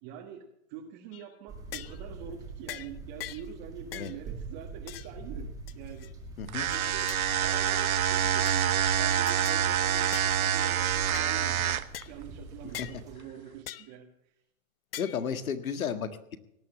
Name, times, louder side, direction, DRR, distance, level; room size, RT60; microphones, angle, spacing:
voice 1, 0.0-5.5 5.7-6.1 6.7-14.1, right 8 dB, 30° right, 0 dB, 1.6 m, -45 dB
sound 1, 1.1-1.3 1.7-2.0 2.7-2.9 3.2-3.5 3.9-4.2 4.9-5.1 5.7-6.1 6.7-7.2 7.7-8.0 8.5-8.7 9.3-9.6 10.1-10.4 11.1-11.3 11.9-12.1 12.7-13.0 13.7-13.9 14.9-15.2, left 13 dB, 45° left, 0.7 m, -42 dB
sound 2, 1.5-13.2, right 3 dB, 10° right, 1.9 m, -45 dB
voice 2, 6.4-6.7 12.8-12.9 15.0-16.4, left 7 dB, 80° left, 9 dB, 1.7 m, -33 dB
sound 3, 6.5-12.0, right 9 dB, 80° right, 1.0 m, -26 dB
18.0 x 9.9 x 7.4 m, 0.80 s
hypercardioid pair, 145°, 42 cm